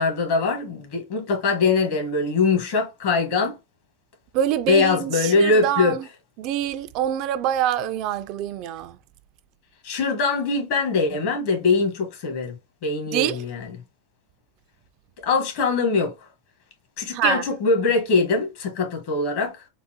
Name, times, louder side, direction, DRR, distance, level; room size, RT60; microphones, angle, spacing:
voice 1, 0.0-3.6 4.7-6.0 9.8-12.5 12.8-13.7 15.2-16.1 17.0-19.7, left 4 dB, 60° left, 1.3 m, -22 dB
voice 2, 4.3-6.0 6.4-8.9 13.1-13.4 17.1-17.4, right 11 dB, 50° right, 0.3 m, -25 dB
3.8 x 2.0 x 2.8 m
supercardioid pair, 125°, 0 cm